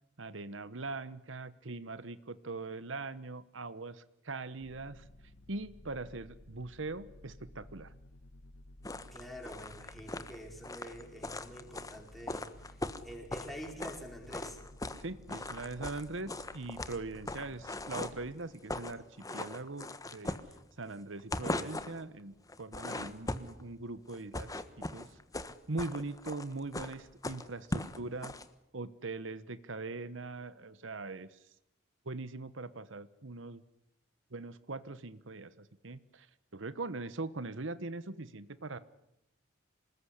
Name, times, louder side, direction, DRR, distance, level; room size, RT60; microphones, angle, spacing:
voice 1, 0.2-5.0 5.5-7.9 15.0-19.0 19.3-20.4 20.8-25.2 25.7-28.3 28.7-31.4 32.0-33.6 34.3-36.3 36.5-38.8, right 3 dB, 70° right, 15 dB, 1.1 m, -41 dB
sound 1, 4.6-18.3, left 1 dB, 75° left, 1.6 m, -55 dB
sound 2, 8.8-14.0 14.3-15.0 15.3-18.2 18.5-19.0 19.2-20.9 21.2-22.0 22.5-23.6 24.1-28.4, left 2 dB, 15° left, 1.3 m, -39 dB
voice 2, 9.1-14.6, equal, ahead, 1 dB, 5.1 m, -47 dB
27.0 x 20.0 x 10.0 m, 0.82 s
head